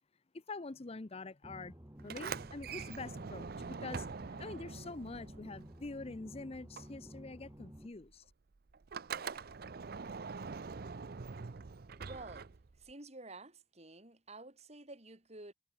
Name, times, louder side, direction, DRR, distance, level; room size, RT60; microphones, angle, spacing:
voice 1, 0.3-1.8 2.0-4.1 4.4-8.2, left 3 dB, 30° left, 0.6 m, -45 dB
sound 1, 1.4-7.9, equal, 15° right, 1.4 m, -52 dB
Sliding door, 2.0-6.3 6.5-12.9, right 5 dB, 55° right, 0.6 m, -44 dB
voice 2, 11.9-12.4 12.8-15.5, right 2 dB, 35° right, 4.3 m, -51 dB
head